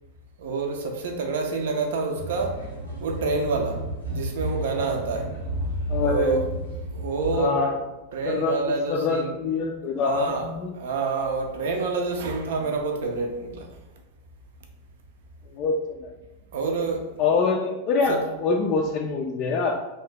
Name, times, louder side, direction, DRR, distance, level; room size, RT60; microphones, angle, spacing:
voice 1, 0.4-2.6 3.0-3.8 4.1-5.3 6.0-6.4 6.9-7.7 8.1-9.3 10.0-10.5 10.7-13.7 16.5-17.1 18.1-18.2, right 3 dB, 60° right, 3 dB, 0.5 m, -27 dB
sound 1, 2.1-7.4, equal, 90° right, 0.9 m, -32 dB
voice 2, 5.9-6.4 7.3-7.7 8.3-8.6 8.9-10.7 15.5-16.1 17.2-19.8, left 4 dB, 40° left, 1 dB, 0.3 m, -25 dB
2.8 x 2.7 x 3.4 m, 1.1 s
figure-of-eight pair, 90°, 0 cm